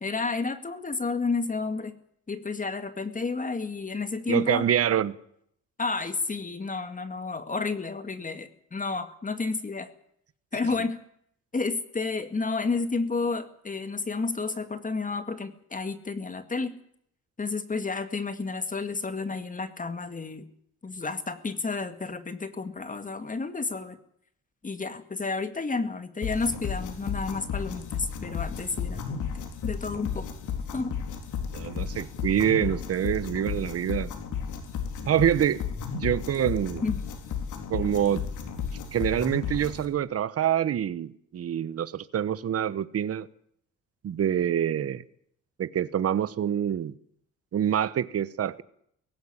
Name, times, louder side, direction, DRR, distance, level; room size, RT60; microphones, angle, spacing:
voice 1, 0.0-1.9 2.3-4.6 5.8-9.9 10.5-11.0 11.5-16.8 17.4-20.5 20.8-24.0 24.6-29.3 29.6-30.3 30.7-30.9 36.8-37.0, left 4 dB, 25° left, 2.0 m, -31 dB
voice 2, 4.3-5.2 31.5-34.1 35.1-35.6 35.9-36.8 37.7-38.3 38.9-43.3 44.0-45.0 45.6-47.0 47.5-48.6, right 9 dB, 50° right, 1.1 m, -26 dB
sound 1, 26.2-39.8, left 7 dB, 80° left, 4.0 m, -33 dB
18.0 x 16.0 x 9.9 m
cardioid pair, 90°, 30 cm